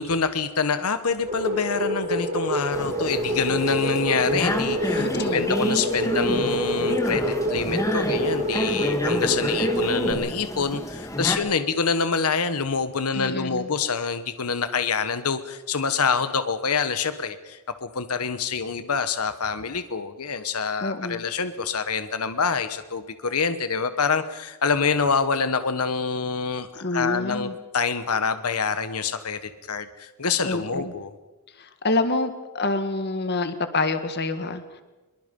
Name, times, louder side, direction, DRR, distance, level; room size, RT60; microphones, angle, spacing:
voice 1, 0.0-31.1, left 5 dB, 85° left, 10 dB, 1.3 m, -26 dB
sound 1, 1.3-10.1, equal, 35° right, 5.2 m, -27 dB
sound 2, 2.7-11.4, equal, 15° left, 2.1 m, -29 dB
voice 2, 5.0-5.5 13.1-13.7 20.8-21.3 26.8-27.5 30.4-30.9 31.6-34.6, left 2 dB, 50° left, 9 dB, 1.7 m, -27 dB
25.0 x 22.5 x 5.4 m, 1.1 s
head